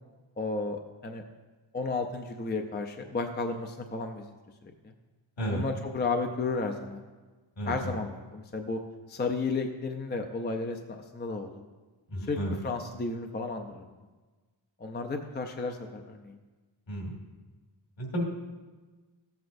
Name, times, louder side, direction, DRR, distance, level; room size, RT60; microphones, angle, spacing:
voice 1, 0.4-1.2 1.7-4.3 4.8-4.9 5.5-7.0 7.7-8.8 9.1-10.8 11.1-11.5 12.2-14.0 14.8-16.4, left 3 dB, 25° left, 5 dB, 0.5 m, -33 dB
voice 2, 7.6-7.9 12.1-12.5 16.9-17.1 18.0-18.2, equal, 70° left, -1 dB, 2.3 m, -32 dB
14.0 x 8.0 x 2.6 m, 1.3 s
wide cardioid pair, 145°, 47 cm